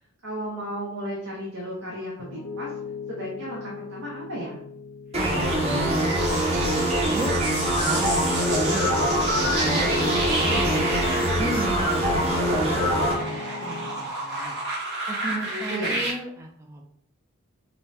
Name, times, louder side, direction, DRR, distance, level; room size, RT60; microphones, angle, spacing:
voice 1, 0.2-2.7 3.1-4.6 15.4-16.0, equal, 70° right, -5 dB, 0.9 m, -34 dB
Piano, 2.2-11.6 12.0-14.0, left 5 dB, 60° left, 0.6 m, -37 dB
sound 1, 5.1-13.1, right 1 dB, 30° right, 0.9 m, -23 dB
voice 2, 5.2-9.0 9.4-11.0 11.4-12.5 12.9-14.5 15.1-16.8, right 1 dB, 15° right, 0 dB, 0.4 m, -35 dB
sound 2, 5.5-16.1, right 2 dB, 50° right, 1.4 m, -32 dB
5.2 x 2.2 x 2.8 m, 0.67 s
head